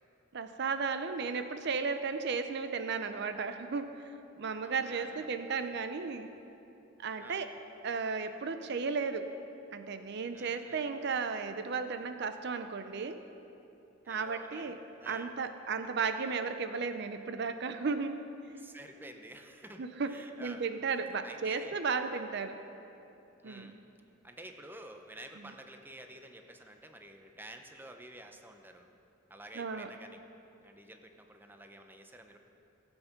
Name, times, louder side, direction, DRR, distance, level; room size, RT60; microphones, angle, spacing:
voice 1, 0.3-3.9 4.4-6.3 7.0-7.5 7.8-9.3 9.7-13.2 14.1-14.8 15.1-18.2 19.8-22.6 23.4-23.8 25.4-25.5 29.5-29.9, right 5 dB, 60° right, 9 dB, 0.6 m, -34 dB
voice 2, 4.6-5.8 7.2-7.5 10.3-11.2 14.0-15.3 18.5-20.7 21.2-21.8 23.4-23.8 24.2-28.9 29.3-30.2 30.6-32.4, right 1 dB, 10° right, 5 dB, 0.7 m, -50 dB
15.5 x 8.0 x 5.9 m, 2.9 s
head